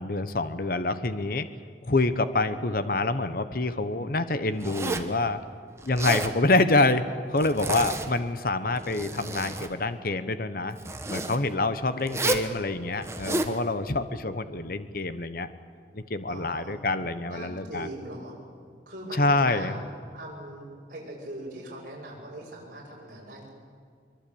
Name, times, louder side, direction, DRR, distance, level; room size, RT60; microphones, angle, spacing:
voice 1, 0.0-1.5 1.8-5.4 5.8-10.8 11.1-15.5 15.9-17.9 19.1-19.7, left 2 dB, 55° left, 11 dB, 1.1 m, -26 dB
Zipper (clothing), 4.6-5.2 5.8-6.3 7.4-8.3 8.7-9.7 10.8-11.4 12.1-12.5 13.0-13.5, right 2 dB, 15° right, 1.3 m, -31 dB
voice 2, 16.3-16.8 17.3-18.4 18.9-19.8 20.1-23.5, right 1 dB, 50° right, -4 dB, 7.6 m, -41 dB
24.0 x 23.5 x 8.7 m, 2.1 s
head